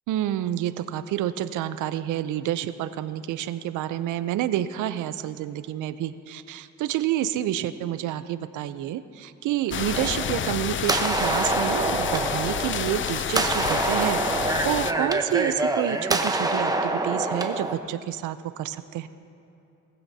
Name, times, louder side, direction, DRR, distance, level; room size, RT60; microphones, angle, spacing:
voice 1, 0.1-19.1, right 12 dB, 85° right, 13 dB, 0.6 m, -29 dB
sound 1, 9.7-14.9, left 9 dB, 40° left, 0.5 m, -29 dB
sound 2, 9.9-17.8, right 2 dB, 10° right, 0.9 m, -26 dB
20.0 x 15.0 x 2.8 m, 2.8 s
cardioid pair, 90°, 30 cm